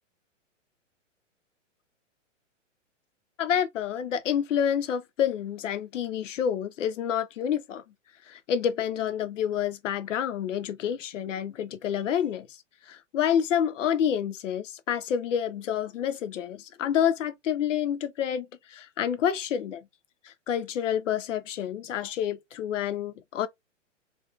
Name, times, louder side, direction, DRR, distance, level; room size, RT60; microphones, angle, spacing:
voice 1, 3.4-7.8 8.3-12.5 12.9-19.8 20.2-23.5, left 9 dB, 80° left, 0.6 m, -28 dB
2.5 x 2.3 x 2.4 m
hypercardioid pair, 130°, 37 cm